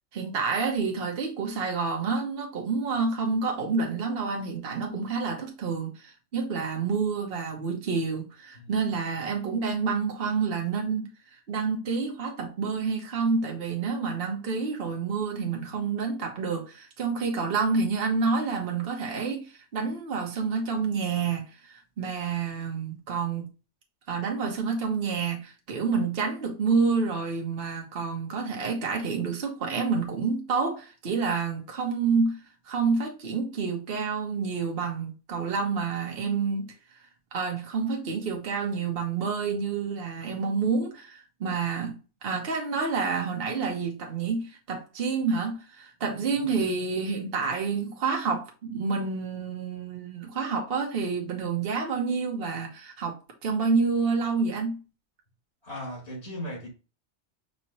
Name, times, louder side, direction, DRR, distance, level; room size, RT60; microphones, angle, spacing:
voice 1, 0.1-11.1 11.5-23.5 24.1-32.4 32.6-36.7 37.3-54.8, right 5 dB, 55° right, 1.2 m, -28 dB
voice 2, 55.6-56.7, equal, 65° left, 1.6 m, -38 dB
5.3 x 2.9 x 2.9 m
omnidirectional pair, 1.2 m